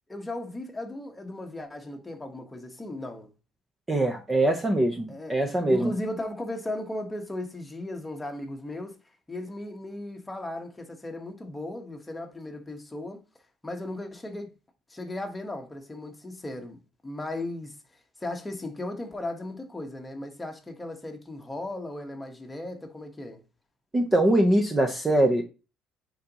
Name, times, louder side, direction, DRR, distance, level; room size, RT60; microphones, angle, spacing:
voice 1, 0.1-3.3 5.1-9.0 9.3-13.2 13.6-14.5 14.9-23.4, left 1 dB, 10° left, 1.3 m, -36 dB
voice 2, 3.9-5.9 23.9-25.4, right 1 dB, 15° right, 0.9 m, -23 dB
9.3 x 3.9 x 3.0 m
cardioid pair, 130°, 0 cm